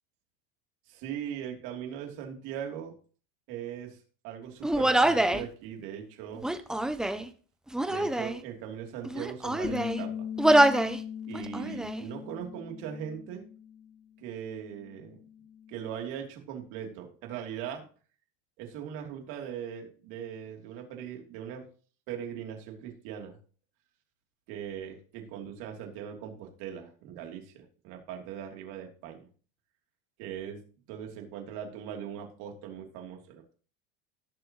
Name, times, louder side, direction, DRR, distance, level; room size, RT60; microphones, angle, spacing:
voice 1, 0.9-2.9 3.5-4.0 4.2-6.5 7.9-10.1 11.2-13.4 14.2-15.2 15.7-17.8 18.6-21.6 22.1-23.4 24.5-29.3 30.2-30.6 30.9-33.5, right 9 dB, 60° right, 2 dB, 3.2 m, -40 dB
Human voice, 4.6-5.4 6.4-7.3 7.7-8.4 9.0-10.0 10.4-11.0 11.3-12.0, right 1 dB, ahead, 0.4 m, -25 dB
Bass guitar, 9.6-14.0 14.3-15.9, left 8 dB, 45° left, 1.3 m, -40 dB
17.5 x 6.8 x 3.1 m, 0.41 s
supercardioid pair, 155°, 35 cm